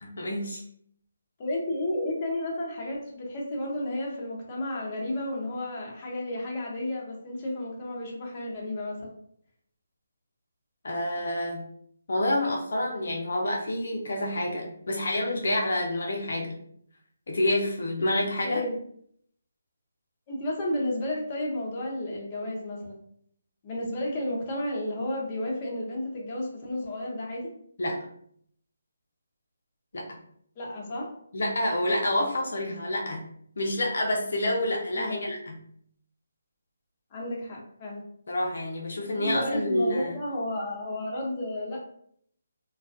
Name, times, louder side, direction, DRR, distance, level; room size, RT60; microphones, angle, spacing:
voice 1, 0.0-0.6 10.8-11.6 12.1-16.6 17.3-18.6 27.8-28.0 29.9-30.1 31.3-33.3 33.6-35.6 38.3-40.1, left 1 dB, 65° left, -1 dB, 0.5 m, -28 dB
voice 2, 1.4-9.1 18.4-18.7 20.3-23.0 23.6-27.5 30.6-31.1 34.9-35.2 37.1-38.0 39.1-41.8, left 1 dB, 30° left, -3 dB, 0.7 m, -32 dB
2.3 x 2.2 x 2.5 m, 0.66 s
figure-of-eight pair, 155°, 0 cm